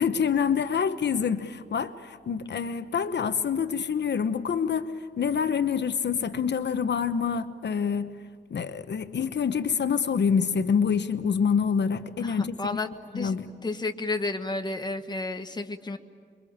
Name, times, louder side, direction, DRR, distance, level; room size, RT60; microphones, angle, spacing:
voice 1, 0.0-8.1 8.5-12.8 13.1-13.5, left 6 dB, 70° left, 10 dB, 1.1 m, -26 dB
voice 2, 12.2-12.9 13.1-13.3 13.6-16.0, left 2 dB, 25° left, 6 dB, 1.3 m, -31 dB
27.5 x 23.0 x 8.7 m, 2.1 s
wide cardioid pair, 160°, 19 cm